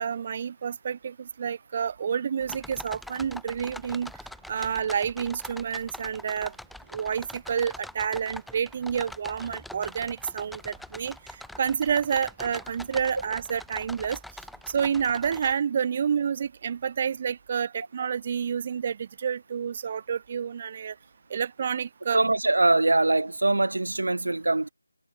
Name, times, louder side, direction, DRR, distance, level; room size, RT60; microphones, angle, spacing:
voice 1, 0.0-4.1 4.5-6.5 6.9-14.2 14.7-20.9 21.3-22.3, right 7 dB, 30° right, 4.9 m, -29 dB
sound 1, 2.4-15.5, left 1 dB, ahead, 6.7 m, -43 dB
voice 2, 22.1-24.7, right 2 dB, 80° right, 1.7 m, -23 dB
figure-of-eight pair, 165°, 0 cm